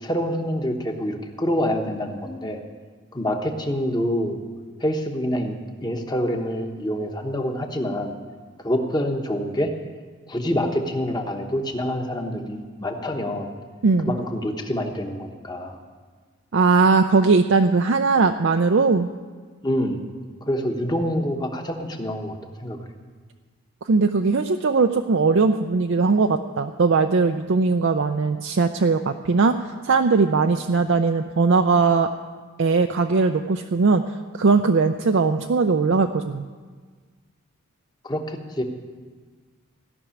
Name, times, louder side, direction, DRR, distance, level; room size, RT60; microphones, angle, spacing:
voice 1, 0.0-2.6 3.1-4.4 4.8-8.1 8.6-9.7 10.3-13.5 14.1-15.8 19.6-20.0 20.5-22.8 38.0-38.6, equal, 20° left, 4 dB, 1.1 m, -26 dB
voice 2, 13.8-14.1 16.5-19.1 23.9-29.6 29.8-32.1 32.6-34.0 34.4-36.5, right 4 dB, 55° right, 6 dB, 0.4 m, -19 dB
16.5 x 6.1 x 9.9 m, 1.5 s
head